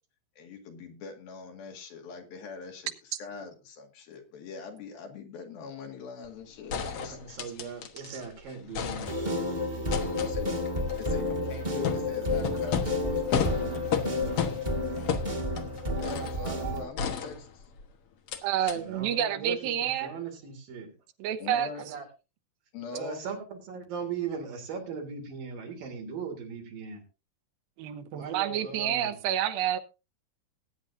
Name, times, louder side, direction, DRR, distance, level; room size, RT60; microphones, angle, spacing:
voice 1, 0.4-2.9 3.2-6.8 7.0-7.2 10.2-10.6 11.0-13.5 16.0-17.6 21.4-21.8 22.7-23.2, left 5 dB, 80° left, 3 dB, 3.9 m, -42 dB
sound 1, 6.2-6.3 6.7-8.3 8.5-9.5 9.9-16.4 17.0-17.8 18.3-18.4 18.7-18.8, left 7 dB, 60° left, 1.6 m, -34 dB
voice 2, 6.9-10.3 14.1-14.4 14.8-15.8 18.6-21.0 21.8-22.1 22.9-27.0 28.1-29.2, right 6 dB, 70° right, 3 dB, 4.8 m, -40 dB
sound 2, 9.0-16.8, left 2 dB, 25° right, 0.9 m, -30 dB
voice 3, 18.4-20.1 21.2-21.7 27.8-29.8, right 10 dB, 90° right, 9 dB, 2.8 m, -29 dB
19.5 x 9.4 x 2.6 m, 0.28 s
omnidirectional pair, 4.2 m